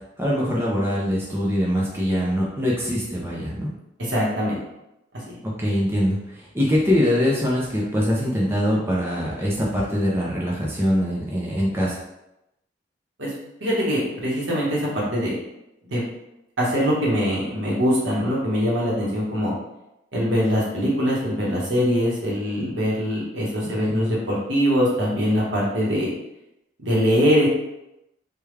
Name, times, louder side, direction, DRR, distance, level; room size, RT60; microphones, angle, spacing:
voice 1, 0.2-3.7 5.4-12.0 23.6-24.1, equal, 10° right, -5 dB, 0.5 m, -23 dB
voice 2, 4.0-4.6 5.3-5.4 13.2-13.3 13.6-15.4 15.9-16.1 16.6-19.5 20.1-26.1 26.8-27.5, equal, 80° right, -5 dB, 1.1 m, -22 dB
3.4 x 2.3 x 3.2 m, 0.88 s
head